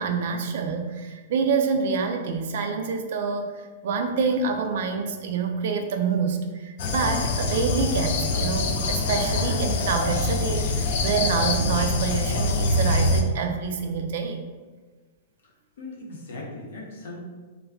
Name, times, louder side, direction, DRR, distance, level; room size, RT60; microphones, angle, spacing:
voice 1, 0.0-3.5 3.8-14.4, right 5 dB, 60° right, 4 dB, 0.4 m, -27 dB
sound 1, 6.8-13.2, left 2 dB, 55° left, 0.3 m, -24 dB
voice 2, 15.8-17.2, left 2 dB, 70° left, -2 dB, 0.8 m, -38 dB
2.2 x 2.1 x 3.5 m, 1.3 s
hypercardioid pair, 150°, 0 cm